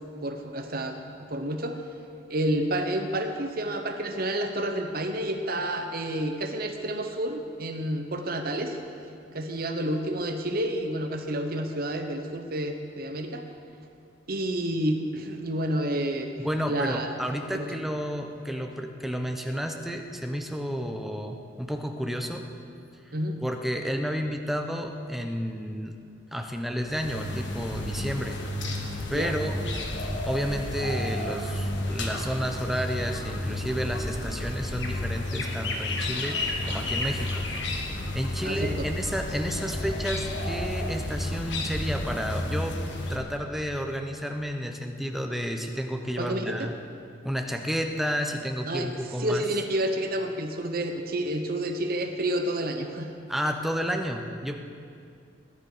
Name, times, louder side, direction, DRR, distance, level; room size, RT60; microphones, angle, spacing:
voice 1, 0.2-1.0 1.3-1.8 2.3-8.8 9.3-13.5 14.3-16.3 16.7-17.1 17.5-17.7 23.1-23.4 29.1-29.3 38.4-38.9 46.2-46.7 48.7-53.1, right 1 dB, 55° right, 5 dB, 1.0 m, -29 dB
voice 2, 16.4-22.5 23.4-26.0 26.3-28.4 29.1-29.5 30.3-37.5 38.1-42.8 43.1-46.7 47.2-49.4 53.3-54.6, equal, ahead, 3 dB, 0.9 m, -31 dB
sound 1, 26.8-43.2, left 1 dB, 75° left, 1.5 m, -31 dB
20.5 x 10.5 x 5.0 m, 2.4 s
head